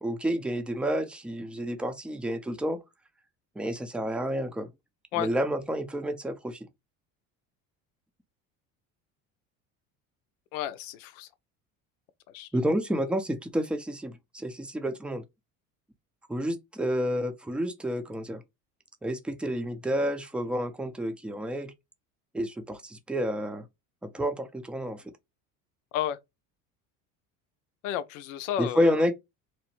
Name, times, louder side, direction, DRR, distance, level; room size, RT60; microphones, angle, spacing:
voice 1, 0.0-2.8 3.6-4.7 5.2-6.6 12.5-15.2 16.3-18.4 19.0-21.7 22.3-23.6 24.0-25.0 28.6-29.1, equal, 5° right, 0.5 m, -29 dB
voice 2, 10.5-11.3 12.3-12.5 25.9-26.2 27.8-29.0, left 11 dB, 85° left, 0.5 m, -32 dB
2.9 x 2.1 x 2.9 m
supercardioid pair, 85°, 37 cm